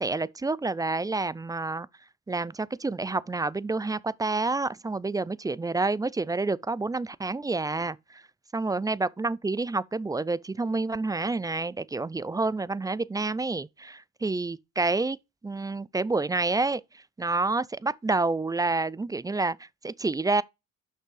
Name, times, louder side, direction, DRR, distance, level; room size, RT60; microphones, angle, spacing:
voice 1, 0.0-1.9 2.3-8.0 8.5-15.2 15.4-16.8 17.2-20.4, right 3 dB, 10° right, 0.3 m, -28 dB
5.9 x 5.5 x 4.8 m
supercardioid pair, 60°, 38 cm